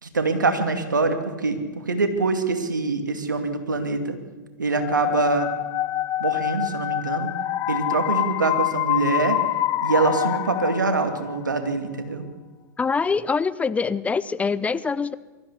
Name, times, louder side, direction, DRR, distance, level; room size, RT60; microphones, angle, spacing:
voice 1, 0.0-1.6 1.9-4.2 4.6-5.5 6.2-7.3 7.7-9.4 9.8-12.2, right 3 dB, 90° right, 7 dB, 2.5 m, -24 dB
sound 1, 4.8-11.6, left 13 dB, 35° left, 1.1 m, -26 dB
voice 2, 12.8-15.1, left 5 dB, 15° left, 17 dB, 0.6 m, -24 dB
23.5 x 14.5 x 8.3 m, 1.3 s
hypercardioid pair, 105°, 10 cm